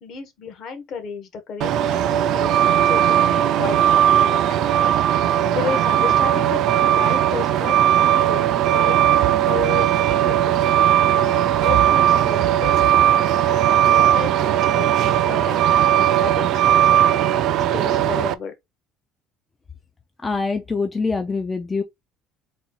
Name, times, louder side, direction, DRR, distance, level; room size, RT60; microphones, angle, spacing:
voice 1, 0.0-4.9 5.5-9.0 9.5-10.8 11.1-18.5, left 6 dB, 45° left, 1.2 m, -33 dB
Truck, 1.6-18.3, right 11 dB, 55° right, 0.4 m, -18 dB
voice 2, 20.2-21.8, left 4 dB, 15° left, 0.4 m, -24 dB
4.1 x 2.4 x 4.1 m
cardioid pair, 155°, 0 cm